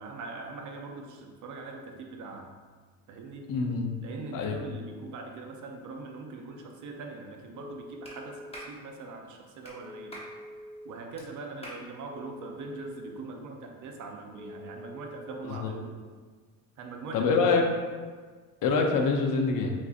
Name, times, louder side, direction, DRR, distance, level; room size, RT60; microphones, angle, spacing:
voice 1, 0.0-2.5 3.1-3.5 4.0-10.2 10.8-15.9 16.8-17.3, right 3 dB, 50° right, 3 dB, 0.6 m, -42 dB
voice 2, 3.5-4.0 4.3-4.7 15.5-15.7 17.1-17.6 18.6-19.7, left 4 dB, 55° left, 3 dB, 0.6 m, -25 dB
Telephone, 7.5-8.6 9.8-10.9 12.1-13.2 14.3-15.4, left 1 dB, 15° right, 0.9 m, -45 dB
Clapping, 8.0-8.2 8.5-8.7 9.6-9.8 10.1-10.3 11.2-11.3 11.6-11.8, equal, 15° left, 0.8 m, -43 dB
6.0 x 2.7 x 2.4 m, 1.5 s
cardioid pair, 130°, 39 cm